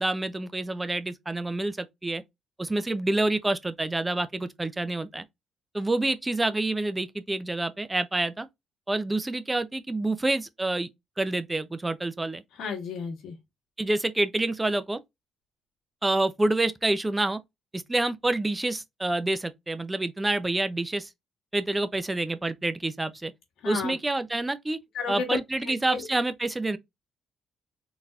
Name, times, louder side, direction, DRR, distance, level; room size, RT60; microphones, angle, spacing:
voice 1, 0.0-2.2 2.6-5.2 5.7-8.5 8.9-10.9 11.2-12.4 13.8-15.0 16.0-17.4 17.7-21.1 21.5-23.3 23.6-24.8 25.1-26.8, right 2 dB, 15° right, 0.4 m, -27 dB
voice 2, 12.6-13.3 23.6-23.9 24.9-25.3 25.6-26.0, left 5 dB, 80° left, 1.5 m, -33 dB
3.9 x 2.7 x 2.3 m
cardioid pair, 90°, 0 cm